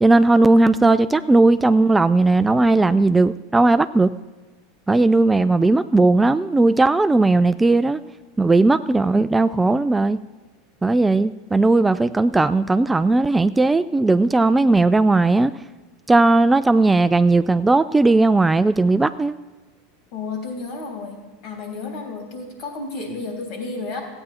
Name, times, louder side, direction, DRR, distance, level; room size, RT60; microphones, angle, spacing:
voice 1, 0.0-4.1 4.9-8.0 8.4-10.2 10.8-15.5 16.1-19.4, right 2 dB, 10° right, 13 dB, 0.3 m, -17 dB
voice 2, 20.1-24.0, left 3 dB, 55° left, 2 dB, 3.3 m, -32 dB
15.0 x 8.8 x 4.3 m, 1.2 s
hypercardioid pair, 90°, 0 cm